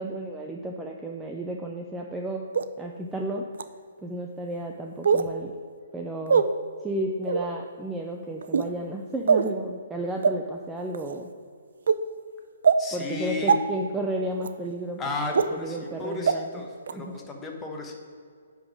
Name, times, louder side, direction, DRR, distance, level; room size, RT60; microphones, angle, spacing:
voice 1, 0.0-2.5 2.8-3.4 4.0-5.5 5.9-6.5 6.8-11.3 12.9-15.0 15.5-16.6 17.0-17.1, right 1 dB, 5° right, 1 dB, 0.4 m, -33 dB
sound 1, 2.5-2.6 3.5-3.6 5.0-5.3 6.3-6.4 7.2-7.5 8.4-8.7 9.3-9.5 10.2-10.3 10.9-11.1 11.9-12.0 12.6-12.8 13.5-13.6 14.4-14.5 15.3-15.4 16.3-16.4 16.9-17.0, right 6 dB, 70° right, 0.5 m, -21 dB
voice 2, 12.8-13.6 15.0-18.0, left 3 dB, 15° left, 1 dB, 1.0 m, -34 dB
10.0 x 3.7 x 6.1 m, 2.2 s
hypercardioid pair, 160°, 0 cm